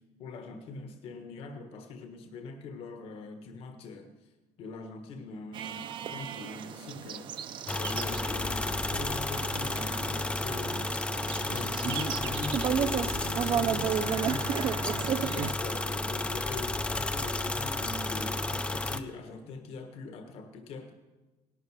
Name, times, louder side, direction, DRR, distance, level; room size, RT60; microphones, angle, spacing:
voice 1, 0.2-4.1 4.6-11.2 11.5-20.9, left 3 dB, 60° left, 6 dB, 1.5 m, -42 dB
sound 1, 5.5-15.5, right 8 dB, 45° right, 0.6 m, -34 dB
sound 2, 7.7-19.0, left 2 dB, 10° left, 0.5 m, -32 dB
18.0 x 11.5 x 4.9 m, 1.2 s
cardioid pair, 150°, 11 cm